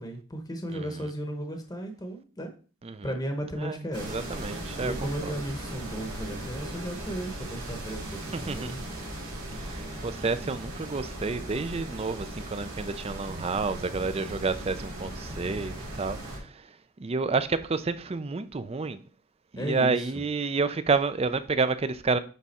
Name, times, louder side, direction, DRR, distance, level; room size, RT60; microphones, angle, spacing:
voice 1, 0.0-2.5 3.0-4.1 4.8-8.8 19.6-20.2, right 1 dB, 15° left, 0.9 m, -35 dB
voice 2, 0.7-1.1 2.8-3.1 3.5-5.4 8.3-8.7 9.6-19.0 19.5-22.2, right 4 dB, 25° right, 0.4 m, -30 dB
sound 1, 3.9-16.4, right 1 dB, 85° right, 2.8 m, -38 dB
9.4 x 3.6 x 4.2 m
head